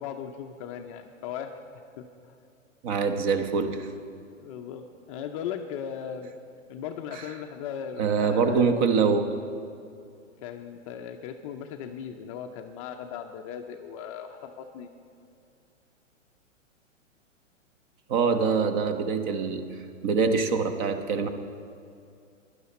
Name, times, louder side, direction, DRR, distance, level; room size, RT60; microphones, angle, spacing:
voice 1, 0.0-1.6 2.0-2.1 4.4-6.3 6.7-9.1 10.4-14.9, left 8 dB, 25° left, 5 dB, 0.5 m, -37 dB
voice 2, 2.8-3.9 7.1-7.2 8.0-9.2 18.1-19.6 20.0-21.3, right 5 dB, 40° right, 8 dB, 1.1 m, -24 dB
16.0 x 11.5 x 4.2 m, 2.4 s
hypercardioid pair, 125°, 39 cm